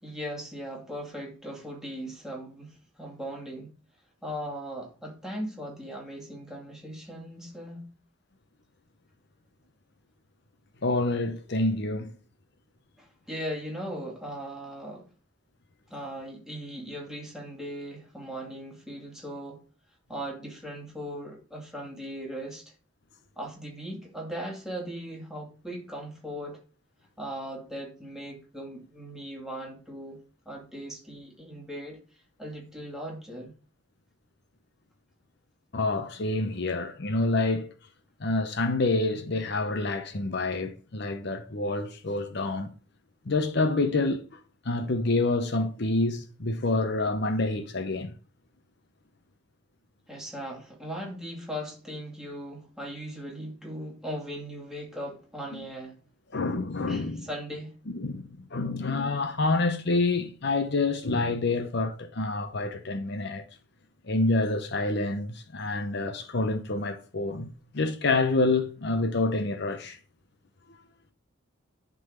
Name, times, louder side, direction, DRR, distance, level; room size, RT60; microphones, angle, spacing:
voice 1, 0.0-3.7 4.2-7.9 13.0-15.1 15.9-19.6 20.1-22.7 23.4-26.6 27.2-30.2 30.5-32.0 32.4-33.5 50.1-56.0 56.9-57.8, equal, 5° right, 2.4 m, -38 dB
voice 2, 10.8-12.1 35.7-37.7 38.2-42.7 43.3-44.4 44.6-48.1 56.3-57.3 57.9-63.4 64.0-70.0, left 2 dB, 55° left, 0.8 m, -27 dB
11.0 x 3.9 x 6.5 m
head